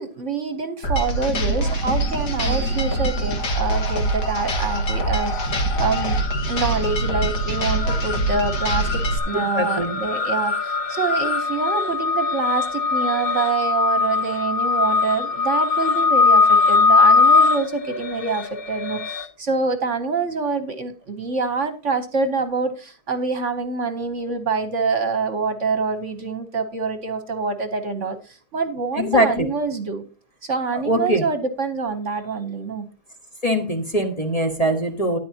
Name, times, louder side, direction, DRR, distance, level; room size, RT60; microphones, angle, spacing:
voice 1, 0.0-6.2 6.5-30.0 30.4-32.9, right 4 dB, 50° right, 9 dB, 1.2 m, -26 dB
sound 1, 0.8-9.2, right 1 dB, 80° left, 2.3 m, -24 dB
sound 2, 1.7-2.3 2.6-19.2, left 4 dB, 40° left, 1.0 m, -22 dB
voice 2, 9.5-10.0 29.0-29.5 30.7-31.2 33.4-35.2, right 1 dB, 25° left, 3 dB, 1.3 m, -22 dB
13.5 x 10.0 x 2.8 m, 0.35 s
omnidirectional pair, 1.8 m